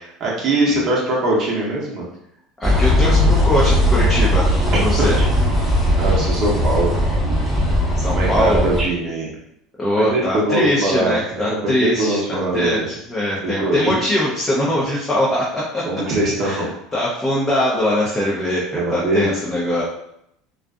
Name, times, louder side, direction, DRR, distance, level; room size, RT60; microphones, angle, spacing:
voice 1, 0.0-2.1 6.0-7.0 8.1-9.3 10.1-12.9 13.4-13.9 15.8-16.7 18.7-19.3, right 2 dB, 45° right, -4 dB, 0.8 m, -21 dB
voice 2, 2.6-4.5 4.7-5.2 8.0-8.6 9.8-15.8 16.4-16.6 16.9-19.8, left 1 dB, 20° left, -6 dB, 0.6 m, -21 dB
sound 1, 2.6-8.8, equal, 5° right, 0.9 m, -18 dB
2.5 x 2.4 x 2.3 m, 0.77 s
supercardioid pair, 110°, 0 cm